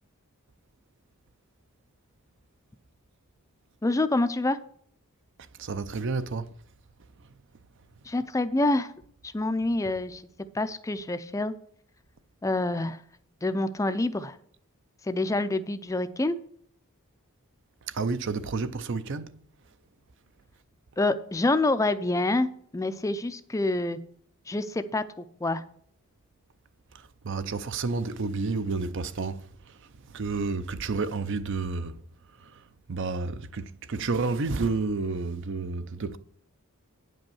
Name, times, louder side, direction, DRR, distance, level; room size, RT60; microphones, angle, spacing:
voice 1, 3.8-4.6 8.0-8.9 9.2-10.2 10.5-11.5 12.4-13.0 13.4-14.4 15.0-16.4 21.0-24.0 24.5-25.6, left 2 dB, 15° left, 0.4 m, -27 dB
voice 2, 5.6-6.5 17.9-19.4 26.9-32.0 32.4-32.6 32.9-36.2, right 4 dB, 55° right, 0.6 m, -31 dB
9.5 x 5.3 x 7.0 m
head